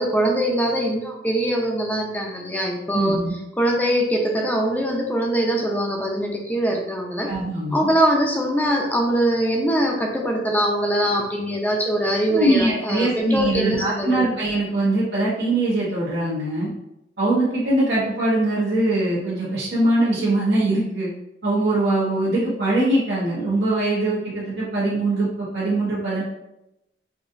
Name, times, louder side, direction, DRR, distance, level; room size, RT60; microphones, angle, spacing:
voice 1, 0.0-7.3 7.7-14.3, right 1 dB, 10° left, 0 dB, 0.5 m, -22 dB
voice 2, 2.9-3.3 7.3-7.9 12.3-16.7 17.2-21.1 21.4-26.2, right 2 dB, 80° right, -9 dB, 1.1 m, -22 dB
4.9 x 2.7 x 2.6 m, 0.87 s
head